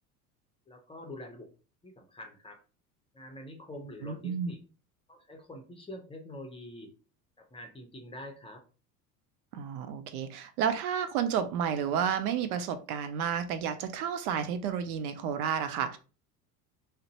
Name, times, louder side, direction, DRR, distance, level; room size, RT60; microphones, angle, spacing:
voice 1, 0.7-1.5 1.8-2.6 3.1-4.6 5.1-6.9 7.4-8.6 11.8-11.9, left 1 dB, 10° left, 0.6 m, -45 dB
voice 2, 4.0-4.5 9.5-16.0, right 8 dB, 70° right, 0.6 m, -31 dB
2.5 x 2.1 x 3.9 m
hypercardioid pair, 80°, 47 cm